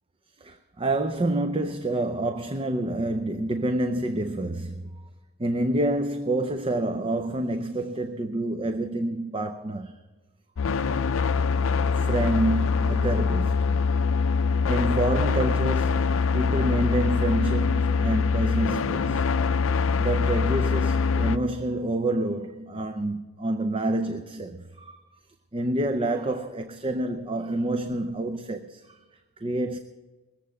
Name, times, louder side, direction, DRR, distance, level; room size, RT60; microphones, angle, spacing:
voice 1, 0.4-5.1 5.4-9.9 11.9-13.9 14.7-19.5 20.0-25.0 25.5-29.0 29.4-29.8, right 1 dB, 25° right, 0.5 m, -28 dB
sound 1, 10.6-21.4, left 5 dB, 70° left, 0.5 m, -24 dB
20.5 x 7.6 x 6.5 m
head